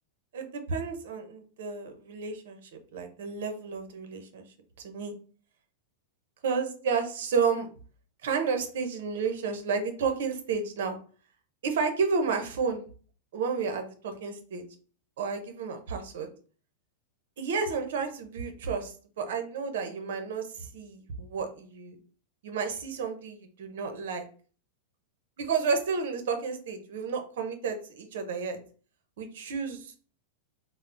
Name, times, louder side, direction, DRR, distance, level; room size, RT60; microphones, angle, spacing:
voice 1, 0.3-4.5 4.8-5.1 6.4-7.7 8.2-11.0 11.6-12.8 13.3-14.6 15.2-16.3 17.4-22.0 22.4-24.2 25.4-28.6 29.2-29.9, right 5 dB, 70° right, 6 dB, 0.6 m, -31 dB
3.4 x 2.0 x 2.5 m, 0.41 s
supercardioid pair, 165°, 0 cm